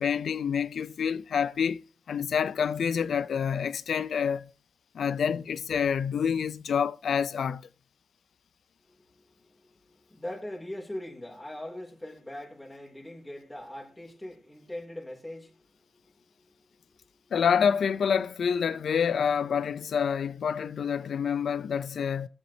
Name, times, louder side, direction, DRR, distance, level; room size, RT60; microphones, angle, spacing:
voice 1, 0.0-1.8 2.1-4.5 4.9-7.6 17.3-22.3, left 7 dB, 75° left, 0.5 m, -27 dB
voice 2, 8.9-17.2, left 1 dB, 10° left, 2.7 m, -42 dB
17.0 x 7.2 x 2.8 m
cardioid pair, 55°, 0 cm